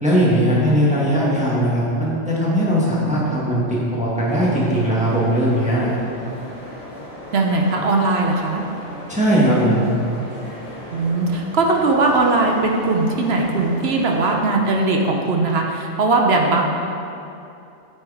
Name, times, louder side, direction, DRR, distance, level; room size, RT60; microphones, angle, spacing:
voice 1, 0.0-5.9 9.1-9.9, equal, 5° right, -7 dB, 1.4 m, -19 dB
sound 1, 4.3-14.4, equal, 55° left, 1.7 m, -37 dB
voice 2, 7.3-8.6 10.9-16.6, right 3 dB, 60° right, 1 dB, 0.9 m, -19 dB
8.9 x 4.7 x 4.8 m, 2.7 s
omnidirectional pair, 1.3 m